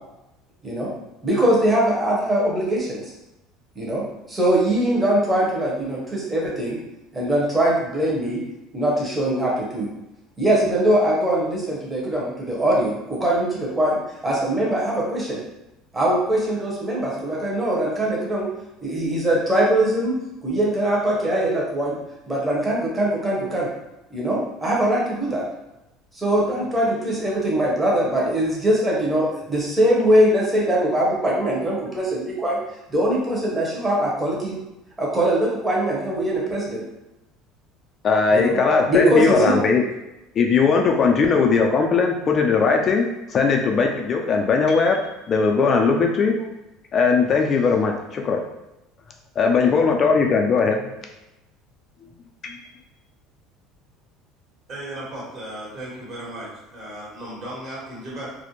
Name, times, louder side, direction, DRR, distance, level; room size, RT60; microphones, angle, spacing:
voice 1, 1.2-3.0 3.8-4.0 4.3-6.8 7.1-8.4 8.7-9.9 10.4-15.4 15.9-18.5 18.8-20.1 20.4-22.0 22.3-23.7 24.1-25.4 26.1-32.6 32.9-34.6 35.0-36.8 38.3-38.6 38.9-39.6, right 1 dB, 15° right, -4 dB, 0.8 m, -22 dB
voice 2, 38.0-39.8 40.4-45.0 45.3-46.5 46.9-48.4 49.4-50.8 52.4-52.6, left 5 dB, 40° left, 2 dB, 0.3 m, -19 dB
voice 3, 54.7-58.3, right 1 dB, 45° right, -6 dB, 1.3 m, -35 dB
2.5 x 2.0 x 2.9 m, 0.94 s
supercardioid pair, 115°, 0 cm